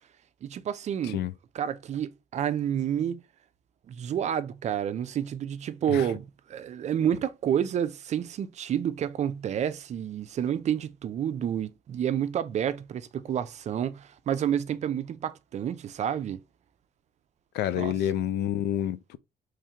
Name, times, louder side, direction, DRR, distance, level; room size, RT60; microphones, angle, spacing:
voice 1, 0.4-1.2 1.5-3.2 3.9-16.4 17.8-17.9, right 9 dB, 45° right, 0.4 m, -29 dB
voice 2, 17.5-19.2, left 11 dB, 75° left, 0.4 m, -28 dB
3.5 x 3.2 x 2.8 m
cardioid pair, 110°, 17 cm